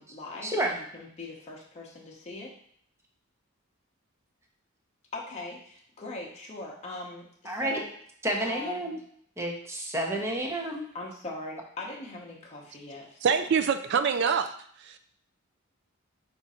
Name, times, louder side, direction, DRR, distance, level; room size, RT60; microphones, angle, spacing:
voice 1, 0.0-2.5 5.1-7.9 8.4-8.9 10.9-13.4, left 2 dB, 30° left, -3 dB, 0.7 m, -41 dB
voice 2, 7.5-7.8 8.2-9.0 9.4-10.9, right 1 dB, 15° right, 1 dB, 0.7 m, -30 dB
voice 3, 13.2-14.6 14.8-15.0, right 6 dB, 55° right, 10 dB, 0.4 m, -25 dB
5.0 x 2.5 x 4.1 m, 0.63 s
head